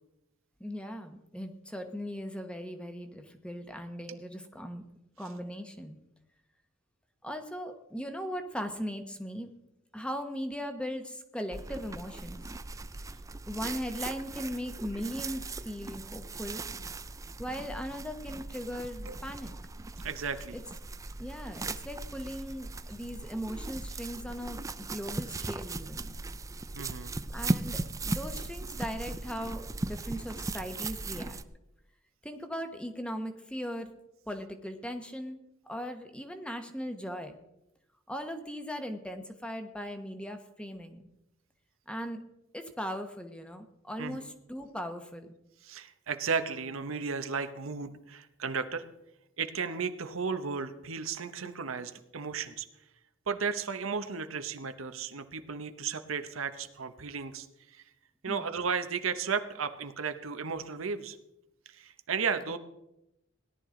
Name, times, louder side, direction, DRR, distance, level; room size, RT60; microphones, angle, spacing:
voice 1, 0.6-4.8 5.2-6.0 7.2-9.5 9.9-12.4 13.5-16.6 17.4-19.5 20.5-20.6 21.2-26.1 27.3-31.4 32.2-33.9 34.3-35.4 35.7-37.4 38.1-41.1 41.9-42.2 42.5-45.4 58.3-58.5, equal, 5° left, 7 dB, 1.0 m, -38 dB
sound 1, 11.5-31.4, right 2 dB, 15° right, 0.4 m, -38 dB
voice 2, 20.0-20.6 26.8-27.1 44.0-44.2 45.6-48.9 49.4-52.7 53.3-57.8 58.2-61.2 61.7-62.6, right 5 dB, 90° right, 9 dB, 0.9 m, -34 dB
17.5 x 11.0 x 3.8 m, 0.87 s
head